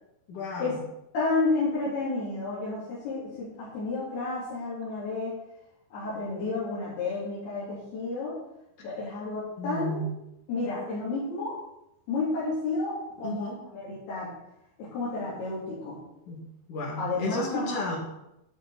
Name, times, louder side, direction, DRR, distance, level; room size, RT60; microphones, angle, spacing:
voice 1, 0.3-0.8 9.6-10.1 13.2-13.6 16.3-16.4 16.7-18.0, left 2 dB, 55° left, 0 dB, 3.8 m, -33 dB
voice 2, 1.1-5.3 5.9-8.4 8.8-10.0 10.5-11.5 12.1-14.3 14.8-16.0 17.0-17.8, left 3 dB, 90° left, -10 dB, 5.5 m, -31 dB
11.0 x 11.0 x 4.4 m, 0.87 s
omnidirectional pair, 4.4 m